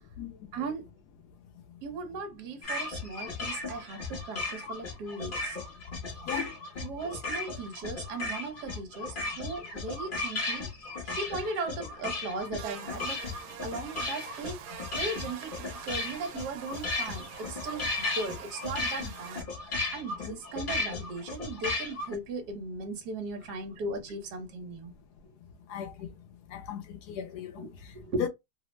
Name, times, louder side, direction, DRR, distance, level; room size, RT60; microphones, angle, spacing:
voice 1, 0.5-0.8 1.8-5.6 6.8-10.7 11.0-13.2 13.6-19.5 19.9-24.9 27.6-28.3, right 3 dB, 65° right, 1.3 m, -37 dB
sound 1, 2.6-22.2, left 3 dB, 50° left, 0.6 m, -35 dB
Buzz, 12.6-19.4, right 10 dB, 90° right, 1.4 m, -45 dB
voice 2, 25.7-26.1 26.5-27.7 28.2-28.3, left 9 dB, 75° left, 0.9 m, -36 dB
3.2 x 2.0 x 3.1 m
omnidirectional pair, 2.1 m